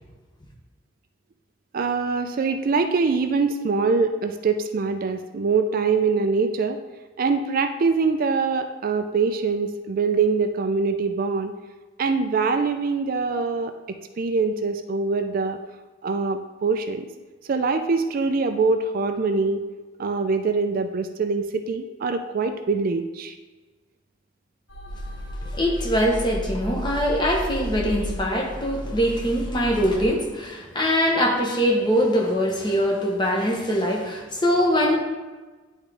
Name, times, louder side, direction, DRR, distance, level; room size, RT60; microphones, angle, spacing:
voice 1, 1.7-6.8 7.2-11.5 12.0-15.6 16.0-17.1 17.5-19.6 20.0-23.3, right 4 dB, 45° right, 7 dB, 0.4 m, -23 dB
sound 1, 24.7-30.1, equal, 85° left, 1.9 m, -33 dB
voice 2, 25.4-35.0, equal, 25° left, 0 dB, 1.0 m, -22 dB
9.8 x 3.6 x 3.4 m, 1.3 s
head